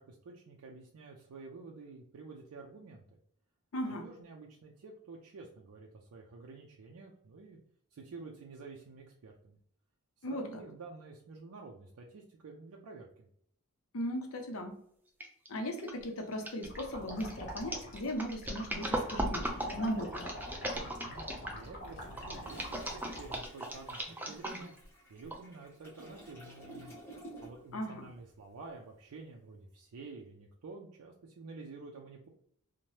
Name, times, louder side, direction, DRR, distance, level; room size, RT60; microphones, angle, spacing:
voice 1, 0.0-3.0 3.8-7.6 7.9-9.6 10.2-13.3 20.7-24.7 25.1-26.9 27.4-32.3, right 3 dB, 75° right, 0 dB, 0.4 m, -50 dB
voice 2, 3.7-4.0 10.2-10.6 13.9-14.8 15.5-20.3 27.7-28.1, equal, 65° left, 4 dB, 0.6 m, -37 dB
sound 1, 15.2-15.5 15.8-21.6 22.2-24.8 25.3-25.4, right 1 dB, 10° right, 0.3 m, -37 dB
sound 2, 16.6-23.4, equal, 50° left, 0.9 m, -45 dB
Toilet flush, 21.8-27.8 28.1-28.3, right 1 dB, 10° left, 0.9 m, -53 dB
2.7 x 2.1 x 3.1 m, 0.66 s
head